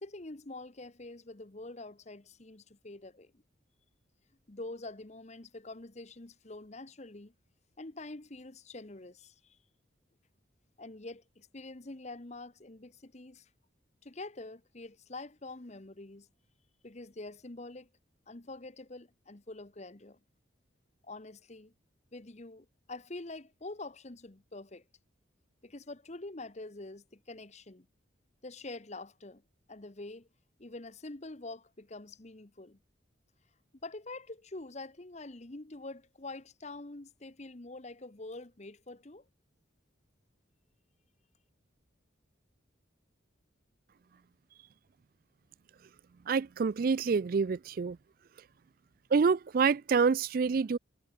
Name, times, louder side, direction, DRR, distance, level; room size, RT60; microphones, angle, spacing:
voice 1, 0.0-3.3 4.5-7.3 7.8-9.6 10.8-13.5 14.0-16.3 16.8-17.9 18.3-20.2 21.0-21.7 22.1-24.8 25.6-27.9 28.4-29.4 29.7-30.3 30.6-32.8 33.8-39.2, left 2 dB, 35° left, 1.1 m, -45 dB
voice 2, 46.3-48.0 49.1-50.8, right 5 dB, 45° right, 0.4 m, -27 dB
head